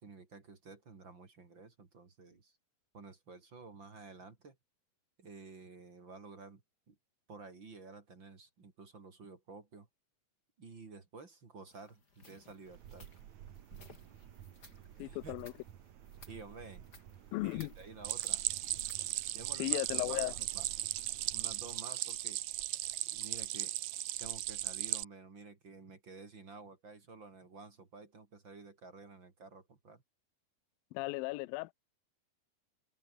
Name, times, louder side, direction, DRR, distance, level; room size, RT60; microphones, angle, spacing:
voice 1, 0.0-2.6 2.9-4.6 5.2-6.6 6.9-7.0 7.3-9.9 10.6-13.1 15.0-15.4 16.3-16.9 17.4-18.4 19.3-19.8 20.1-20.7 21.3-22.4 23.1-23.7 24.2-30.0, right 4 dB, 30° right, 3.2 m, -52 dB
sound 1, 11.7-19.2, left 3 dB, 25° left, 4.9 m, -61 dB
sound 2, 12.6-21.8, right 11 dB, 60° right, 2.3 m, -54 dB
voice 2, 15.0-15.5 17.3-17.7 19.6-20.4 30.9-31.7, left 21 dB, 80° left, 2.3 m, -36 dB
Stream, 18.0-25.0, right 15 dB, 85° right, 1.6 m, -36 dB
omnidirectional pair, 4.5 m